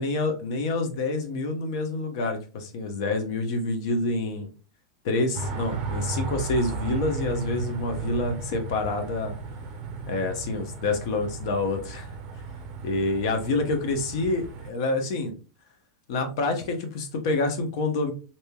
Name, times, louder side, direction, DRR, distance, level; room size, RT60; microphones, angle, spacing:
voice 1, 0.0-4.5 5.0-9.3 10.1-12.1 12.8-15.3 16.1-18.1, left 2 dB, 60° left, 5 dB, 0.7 m, -27 dB
sound 1, 5.3-14.7, right 4 dB, 30° right, 0.5 m, -35 dB
3.1 x 2.7 x 2.2 m, 0.35 s
supercardioid pair, 165°, 3 cm